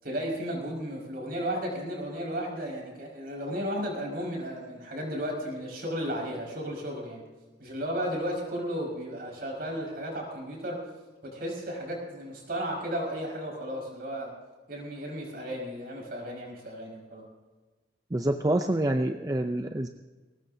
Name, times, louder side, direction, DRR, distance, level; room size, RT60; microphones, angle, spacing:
voice 1, 0.0-7.2 7.6-10.8 11.2-14.3 14.7-17.3, equal, 55° right, -1 dB, 5.4 m, -34 dB
voice 2, 18.1-19.9, right 1 dB, 20° right, 6 dB, 0.5 m, -27 dB
21.0 x 18.5 x 2.8 m, 1.3 s
head